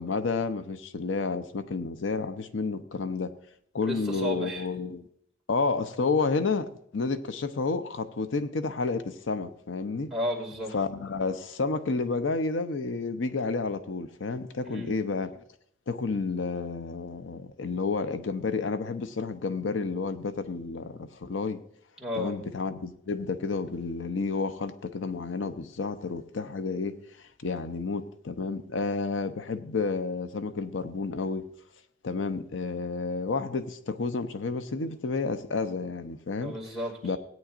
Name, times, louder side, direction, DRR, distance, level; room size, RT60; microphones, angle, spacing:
voice 1, 0.0-3.3 3.7-5.1 5.5-10.1 10.7-15.3 15.9-21.6 22.1-27.0 27.4-31.5 32.0-36.5 37.0-37.2, left 4 dB, 85° left, 0.6 m, -30 dB
voice 2, 3.8-4.6 10.1-10.8 14.6-14.9 22.0-22.4 36.4-37.0, equal, 5° right, 2.2 m, -33 dB
17.0 x 9.2 x 2.5 m
head